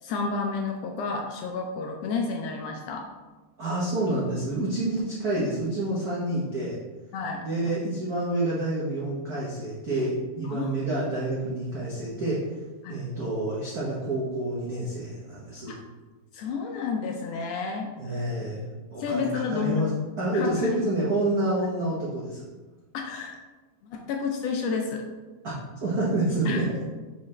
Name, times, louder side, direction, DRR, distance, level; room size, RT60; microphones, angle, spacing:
voice 1, 0.0-3.1 7.1-7.4 10.4-10.8 12.8-13.0 15.7-15.8 16.3-17.9 19.0-19.8 20.3-20.8 22.9-23.4 23.8-25.0 26.4-26.6, left 5 dB, 75° left, 2 dB, 1.5 m, -30 dB
voice 2, 3.6-6.8 7.4-12.4 12.9-15.7 18.0-22.5 25.4-25.5 25.8-26.6, right 1 dB, 85° right, -7 dB, 0.8 m, -28 dB
5.9 x 5.0 x 3.2 m, 1.3 s
omnidirectional pair, 3.3 m